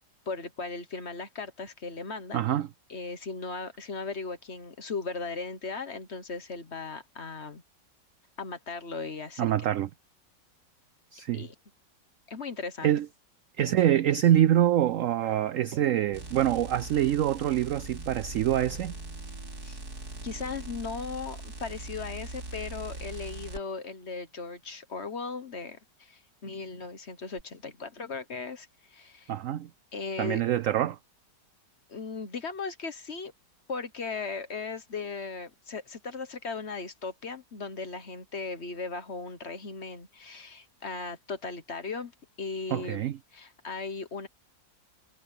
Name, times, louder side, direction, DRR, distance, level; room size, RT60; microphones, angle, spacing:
voice 1, 0.3-2.4 2.9-7.6 8.4-9.5 11.3-11.5 12.3-12.9 19.6-19.8 20.2-29.3 29.9-30.4 31.9-33.3 33.7-42.1 42.4-43.1 43.3-44.3, left 4 dB, 40° left, 1.4 m, -37 dB
voice 2, 2.3-2.7 9.4-9.9 11.1-11.4 12.8-13.1 13.6-19.0 29.3-29.7 30.2-31.0 42.7-43.2, right 11 dB, 80° right, 0.7 m, -25 dB
sound 1, 16.1-23.6 27.4-27.5, right 2 dB, 55° right, 4.3 m, -41 dB
omnidirectional pair, 1.9 m